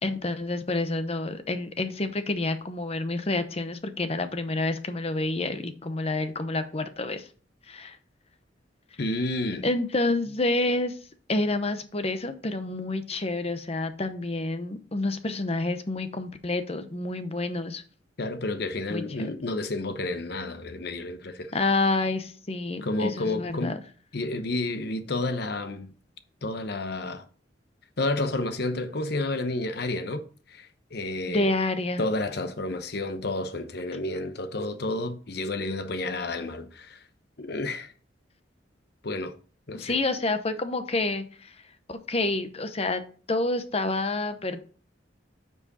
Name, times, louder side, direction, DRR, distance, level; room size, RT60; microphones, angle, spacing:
voice 1, 0.0-7.3 7.7-8.0 9.6-11.0 11.3-17.8 18.9-19.3 21.5-23.8 31.3-32.0 39.7-41.5 41.9-43.0 43.3-44.6, left 2 dB, 35° left, 0.8 m, -28 dB
voice 2, 9.0-9.6 18.2-21.5 22.8-23.8 24.1-25.9 26.4-27.2 28.0-31.5 32.0-37.0 37.4-37.9 39.0-39.3 39.7-40.0, left 2 dB, 60° left, 0.9 m, -30 dB
8.3 x 4.8 x 4.1 m
head